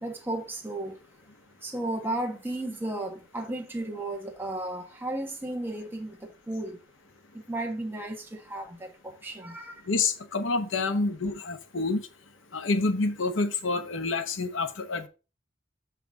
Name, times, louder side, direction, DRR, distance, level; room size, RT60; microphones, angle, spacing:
voice 1, 0.0-1.0 1.6-6.8 7.3-9.8 10.9-11.0, right 1 dB, 10° right, 1.3 m, -34 dB
voice 2, 9.9-12.0 12.5-15.1, left 3 dB, 85° left, 0.9 m, -28 dB
5.9 x 5.8 x 3.6 m
head